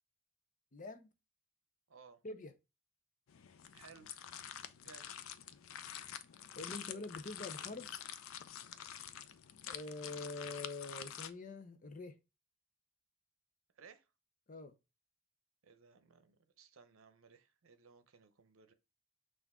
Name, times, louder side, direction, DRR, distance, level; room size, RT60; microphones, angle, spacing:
voice 1, 0.7-1.1 2.2-2.5 6.6-8.0 9.7-12.2 14.5-14.7, left 3 dB, 40° left, 0.6 m, -45 dB
voice 2, 1.9-2.2 3.7-4.1 4.8-5.1 13.8-14.1 15.6-18.7, right 5 dB, 85° right, 0.7 m, -60 dB
sound 1, 3.3-11.3, left 9 dB, 85° left, 0.4 m, -48 dB
5.8 x 2.5 x 3.5 m
head